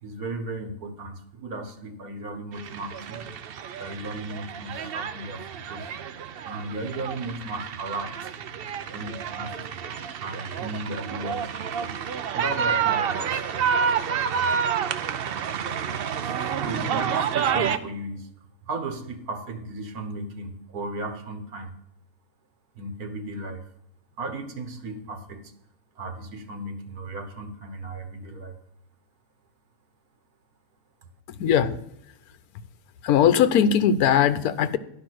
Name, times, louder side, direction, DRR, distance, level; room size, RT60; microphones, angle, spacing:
voice 1, 0.0-3.3 3.8-6.0 6.4-8.3 8.9-9.8 10.2-11.9 12.3-13.7 14.3-14.5 16.2-18.3 18.6-21.7 22.8-23.7 24.2-25.5 26.0-28.6, right 2 dB, 85° right, 8 dB, 1.8 m, -36 dB
sound 1, 2.5-17.8, right 7 dB, 60° right, 0.6 m, -29 dB
voice 2, 31.3-31.8 33.0-34.8, left 8 dB, 80° left, 12 dB, 1.2 m, -20 dB
11.5 x 5.5 x 6.2 m, 0.75 s
omnidirectional pair, 1.6 m